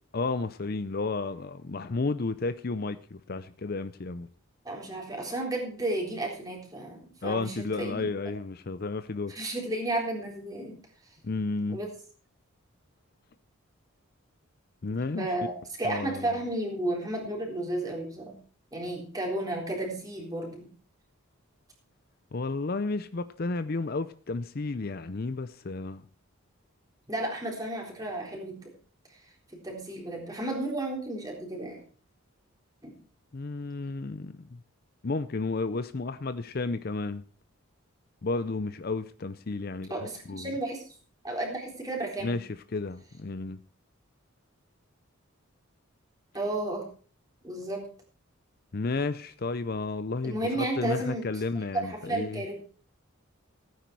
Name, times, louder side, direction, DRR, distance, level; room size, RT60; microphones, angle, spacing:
voice 1, 0.1-4.3 7.2-9.3 11.2-11.8 14.8-15.3 15.8-16.4 22.3-26.0 33.3-34.6 35.0-37.2 38.2-39.9 40.3-40.5 42.2-43.6 48.7-52.4, left 3 dB, 45° left, 0.5 m, -32 dB
voice 2, 4.6-8.3 9.3-10.7 11.7-11.9 15.2-18.3 18.7-20.7 27.1-28.6 29.5-31.8 32.8-32.9 39.9-40.8 41.2-42.4 46.3-46.9 47.4-47.9 50.2-51.2 51.7-52.6, right 1 dB, 15° right, 3.9 m, -33 dB
16.5 x 9.3 x 4.7 m
head